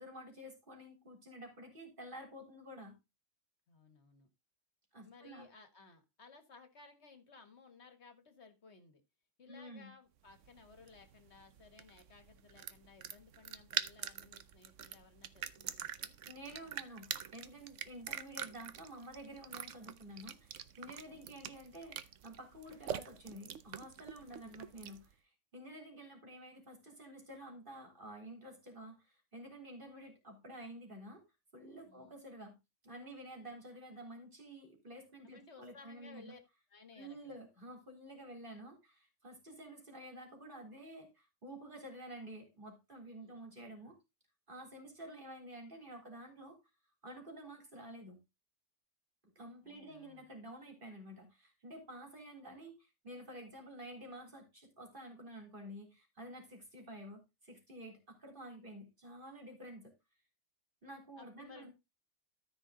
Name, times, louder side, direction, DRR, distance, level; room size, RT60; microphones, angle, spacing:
voice 1, 0.0-3.0 4.9-5.5 9.5-9.9 16.3-31.2 31.5-32.6 32.8-36.3 36.9-44.0 44.5-46.6 47.0-48.2 49.4-59.9 60.8-61.7, right 1 dB, 45° right, 3 dB, 3.8 m, -50 dB
voice 2, 3.7-4.3 5.0-9.0 9.4-16.2 21.1-21.4 24.2-24.6 31.9-32.2 35.2-36.4 36.7-37.4 43.2-43.4 49.6-50.3 61.2-61.7, left 4 dB, 65° left, 8 dB, 1.8 m, -59 dB
sound 1, 10.3-25.1, right 9 dB, 80° right, 1.1 m, -45 dB
13.5 x 5.2 x 3.9 m, 0.24 s
omnidirectional pair, 1.3 m